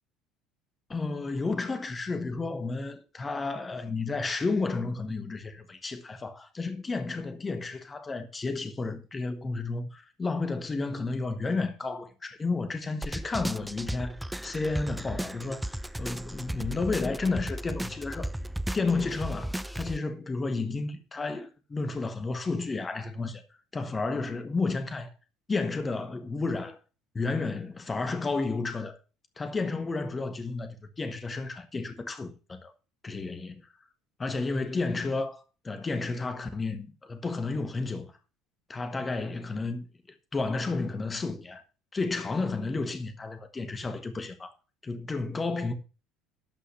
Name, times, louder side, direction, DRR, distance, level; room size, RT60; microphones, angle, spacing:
voice 1, 0.9-18.3 18.7-23.4 23.7-25.1 25.5-26.8 27.1-29.0 29.4-32.7 33.0-33.6 34.2-38.1 38.7-39.9 40.3-41.6 41.9-44.5 44.8-45.7, left 3 dB, 25° left, 1.5 m, -32 dB
sound 1, 13.0-20.0, right 1 dB, 5° right, 0.5 m, -35 dB
12.5 x 5.7 x 5.6 m
figure-of-eight pair, 60°, 0 cm